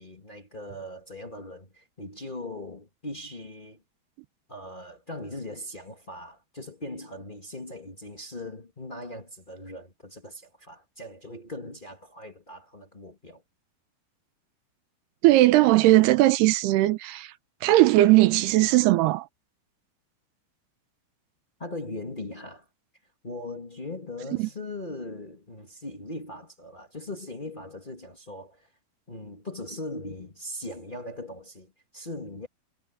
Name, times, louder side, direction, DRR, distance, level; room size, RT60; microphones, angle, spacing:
voice 1, 0.0-3.8 4.5-13.4 21.6-22.6 23.2-28.7 29.1-32.5, left 2 dB, 55° left, 0.5 m, -39 dB
voice 2, 15.2-17.3 17.6-19.3 24.4-24.5, right 17 dB, 85° right, 3.0 m, -19 dB
omnidirectional pair, 4.5 m